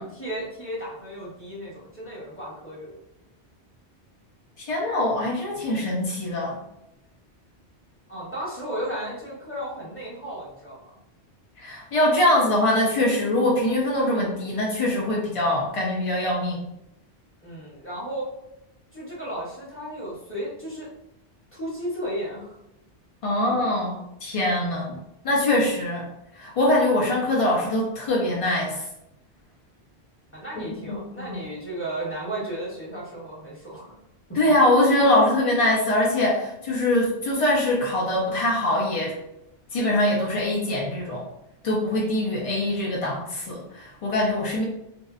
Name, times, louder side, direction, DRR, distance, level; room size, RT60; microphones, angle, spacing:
voice 1, 0.0-3.0 8.1-10.9 17.4-18.3 18.9-20.9 21.5-22.6 30.3-33.9, right 1 dB, 15° left, -8 dB, 0.7 m, -34 dB
voice 2, 4.6-6.6 11.6-16.6 23.2-25.0 25.2-26.1 26.3-28.8 30.9-31.4 34.4-39.2 39.7-41.3 41.6-44.6, left 1 dB, 65° left, -3 dB, 0.3 m, -23 dB
2.6 x 2.0 x 2.3 m, 0.85 s
omnidirectional pair, 1.1 m